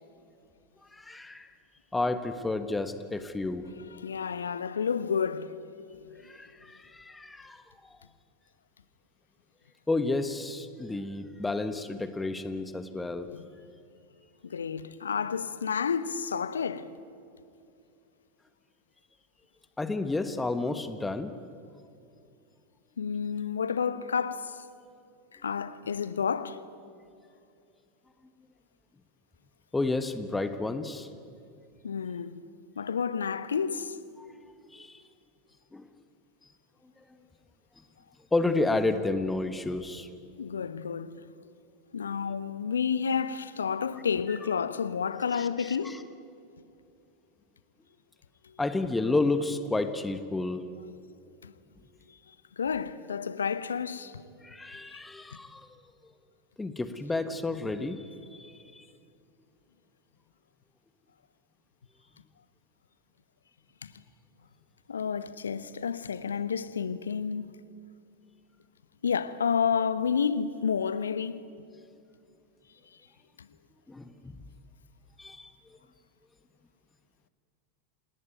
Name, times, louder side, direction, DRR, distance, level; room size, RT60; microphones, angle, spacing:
voice 1, 0.9-1.5 1.9-3.6 6.2-7.6 7.9-8.0 9.9-13.3 19.8-21.3 29.7-31.1 34.2-34.3 34.7-35.0 35.7-35.9 38.3-40.1 44.3-44.4 45.3-46.0 48.6-50.6 54.4-55.8 56.6-58.9 73.9-74.3 75.2-75.5, left 2 dB, 10° left, 1.4 m, -31 dB
voice 2, 4.0-5.5 6.1-6.3 13.3-13.4 14.4-16.9 23.0-24.6 25.3-26.6 31.8-32.4 32.8-34.0 40.4-41.2 41.9-46.1 48.4-48.5 51.4-51.5 52.6-54.2 63.8-63.9 64.9-67.6 69.0-71.4 73.4-73.5, left 6 dB, 75° left, 1.1 m, -30 dB
28.0 x 19.5 x 9.3 m
figure-of-eight pair, 85°, 0 cm